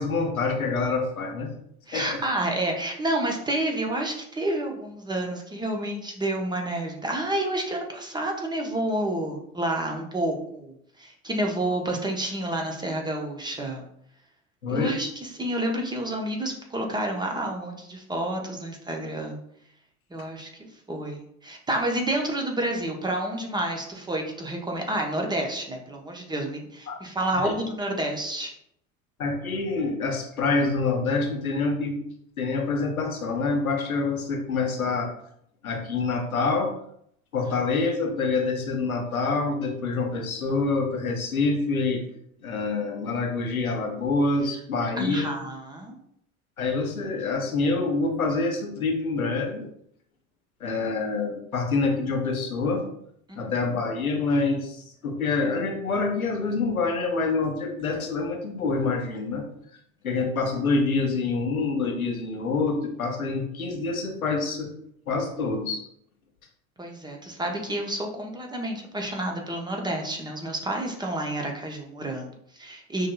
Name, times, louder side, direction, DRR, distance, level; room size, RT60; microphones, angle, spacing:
voice 1, 0.0-1.5 1.9-2.2 14.6-15.0 26.9-27.0 27.3-27.5 29.2-32.0 32.4-35.1 35.6-36.7 37.3-42.0 42.4-45.3 46.6-49.7 50.6-52.8 53.3-59.5 60.0-64.7 65.1-65.8, left 3 dB, 85° left, 3 dB, 0.7 m, -26 dB
voice 2, 1.9-13.8 14.7-19.4 20.1-20.5 20.9-28.5 45.0-46.0 53.3-53.4 66.8-73.1, right 1 dB, 10° right, 1 dB, 0.6 m, -29 dB
6.1 x 2.7 x 2.3 m, 0.70 s
figure-of-eight pair, 75°, 42 cm